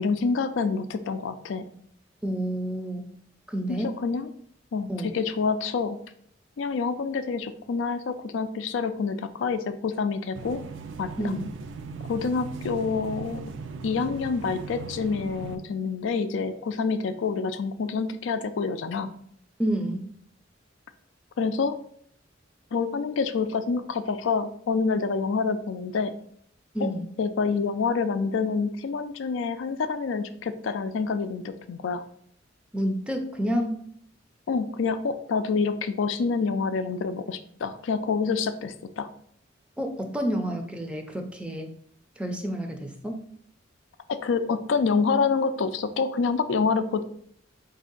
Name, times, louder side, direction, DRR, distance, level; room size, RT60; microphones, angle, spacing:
voice 1, 0.0-1.6 3.7-4.3 4.7-6.0 6.6-10.6 11.0-11.3 12.1-13.4 13.8-19.1 21.4-21.8 22.7-26.1 26.8-26.9 27.2-32.0 34.5-39.1 44.1-47.0, left 5 dB, 80° left, 10 dB, 0.4 m, -27 dB
voice 2, 2.2-3.1 3.5-4.0 4.9-5.1 11.2-11.5 19.6-20.1 26.7-27.1 32.7-33.8 39.8-41.7 42.2-43.3, equal, 5° right, 4 dB, 0.4 m, -29 dB
sound 1, 10.4-15.6, right 5 dB, 75° right, 0.4 m, -38 dB
4.2 x 2.7 x 3.8 m, 0.65 s
head